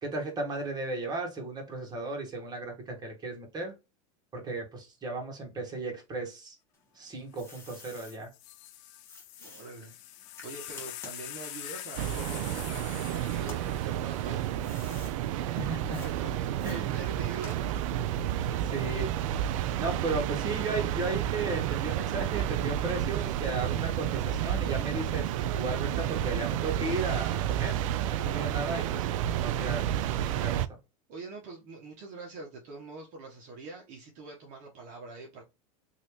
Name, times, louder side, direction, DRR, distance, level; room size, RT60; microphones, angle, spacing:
voice 1, 0.0-3.7 4.3-6.6 6.9-8.3 15.4-16.0 16.6-16.9 18.5-19.3 19.8-27.8 28.1-29.8 30.4-30.6, right 2 dB, 25° right, 1.5 m, -35 dB
sound 1, 6.7-8.2 9.1-13.0 13.4-15.2 15.9-16.1 16.6-17.9, left 3 dB, 15° left, 1.5 m, -51 dB
sound 2, 7.3-7.4 7.7-15.1 16.0-16.4, left 13 dB, 60° left, 0.5 m, -45 dB
voice 2, 9.4-10.0 10.4-14.5 15.7-17.9 30.0-30.4 31.1-35.4, right 4 dB, 45° right, 1.1 m, -44 dB
sound 3, 11.9-30.7, right 11 dB, 65° right, 0.4 m, -31 dB
3.2 x 2.7 x 2.9 m
supercardioid pair, 120°, 18 cm